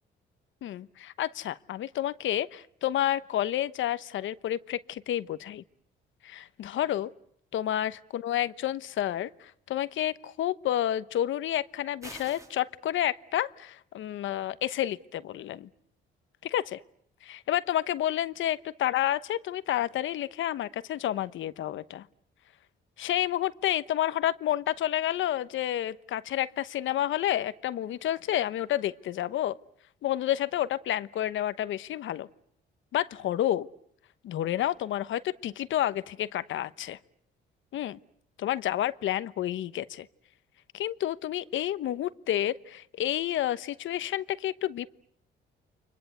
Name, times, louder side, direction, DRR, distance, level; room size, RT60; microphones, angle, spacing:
voice 1, 0.6-5.6 6.2-7.1 7.5-15.7 16.4-16.8 17.2-22.1 23.0-29.6 30.0-32.3 32.9-33.7 34.2-37.0 37.7-38.0 38.4-40.1 40.7-44.9, left 12 dB, 75° left, 15 dB, 1.1 m, -30 dB
sound 1, 12.0-12.6, right 1 dB, 15° right, 2.5 m, -45 dB
30.0 x 24.5 x 8.0 m, 0.70 s
cardioid pair, 90°, 20 cm